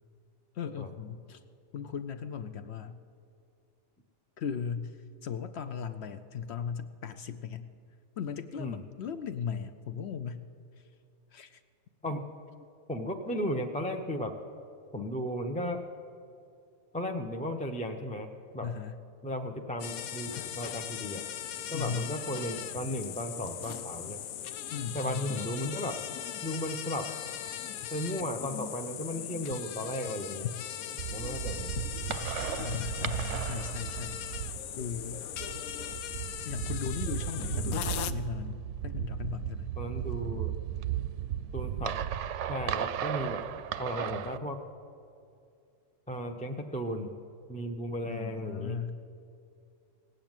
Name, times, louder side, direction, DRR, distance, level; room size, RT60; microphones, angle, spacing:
voice 1, 0.5-1.4 1.7-3.0 4.4-7.7 8.2-10.5 10.8-10.9 11.3-11.6 18.6-18.9 21.7-22.1 24.7-25.4 32.6-34.3 34.8-35.3 36.4-39.7 48.0-49.0, left 7 dB, 65° left, 10 dB, 0.7 m, -37 dB
voice 2, 12.9-14.3 14.9-15.8 16.9-18.7 19.2-21.2 21.7-24.2 24.9-26.0 26.4-27.1 27.9-30.5 31.1-31.7 39.8-40.5 41.5-41.9 42.5-43.4 43.8-44.6 46.1-47.1 47.5-48.8, equal, 10° left, 4 dB, 0.4 m, -35 dB
sound 1, 19.8-38.1, left 10 dB, 85° left, 1.1 m, -39 dB
sound 2, 31.0-44.4, right 11 dB, 70° right, 0.8 m, -35 dB
17.5 x 7.8 x 8.9 m, 2.5 s
omnidirectional pair, 1.5 m